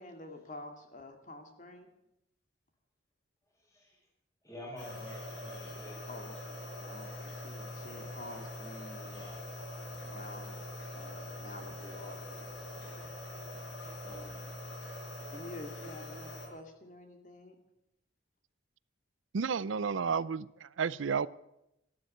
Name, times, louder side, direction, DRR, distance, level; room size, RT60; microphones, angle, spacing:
voice 1, 0.0-1.9 6.1-9.5 10.0-10.6 10.9-13.0 15.3-17.6, left 2 dB, 40° left, 2.3 m, -49 dB
voice 2, 4.4-6.0 14.0-14.5, left 1 dB, 15° left, 4.7 m, -48 dB
sound 1, 4.8-16.5, left 1 dB, 70° left, 5.0 m, -43 dB
voice 3, 19.3-21.3, right 6 dB, 90° right, 0.5 m, -32 dB
14.0 x 12.5 x 8.0 m
head